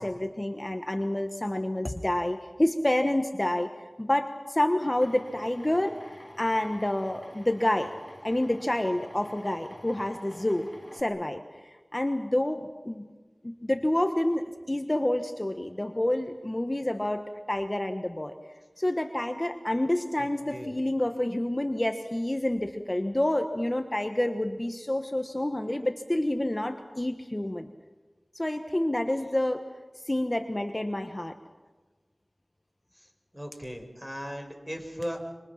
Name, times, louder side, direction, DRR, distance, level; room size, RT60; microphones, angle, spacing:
voice 1, 0.0-3.7 4.0-7.9 8.2-13.1 13.4-18.3 18.8-27.7 28.3-29.6 30.0-31.3, left 1 dB, 30° left, 6 dB, 1.3 m, -28 dB
Drill, 5.0-11.0, left 1 dB, 10° left, 2.2 m, -48 dB
voice 2, 20.2-20.7 33.3-35.2, equal, 10° right, 3 dB, 5.3 m, -38 dB
27.5 x 26.0 x 5.9 m, 1.3 s
wide cardioid pair, 50°, 0 cm